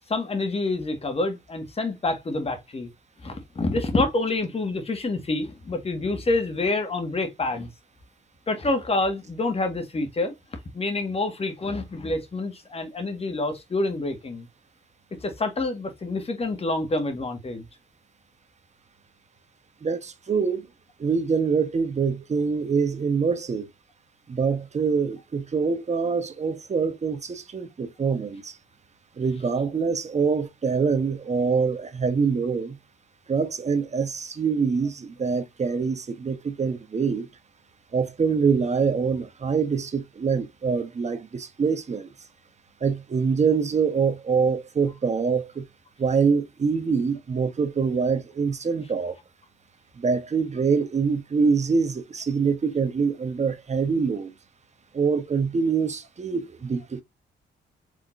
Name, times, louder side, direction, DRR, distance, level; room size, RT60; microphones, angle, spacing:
voice 1, 0.1-2.9 3.2-7.7 8.5-10.3 10.7-14.5 15.2-17.6, left 2 dB, 35° left, 1.7 m, -27 dB
voice 2, 19.8-20.7 21.0-23.7 24.3-28.5 29.2-32.8 33.3-37.3 37.9-42.1 42.8-45.6 46.0-49.2 50.0-54.3 54.9-57.0, right 5 dB, 40° right, 1.1 m, -25 dB
5.0 x 3.7 x 2.6 m
cardioid pair, 80°, 18 cm